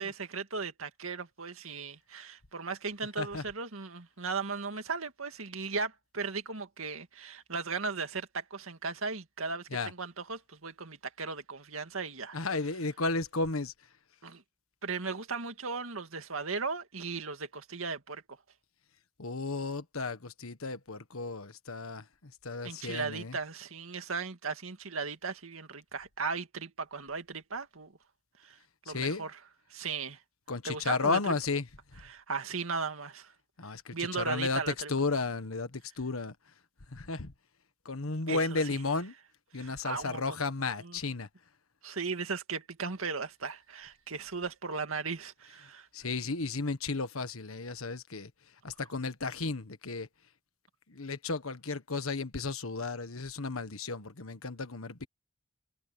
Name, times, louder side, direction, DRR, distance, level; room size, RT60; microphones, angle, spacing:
voice 1, 0.0-12.4 14.2-14.4 14.8-18.2 22.6-27.9 28.4-28.6 28.9-30.2 30.6-31.4 32.0-33.3 33.9-34.9 38.3-38.8 39.5-40.4 40.8-41.0 41.8-45.9, right 4 dB, 80° right, 2.1 m, -37 dB
voice 2, 12.3-13.7 19.2-22.0 22.4-23.3 28.9-29.2 30.5-31.6 33.6-34.6 34.9-35.7 36.0-36.3 36.9-37.3 37.8-39.1 39.5-41.3 45.9-48.3 48.6-50.1 51.0-55.1, left 3 dB, 85° left, 1.5 m, -33 dB
head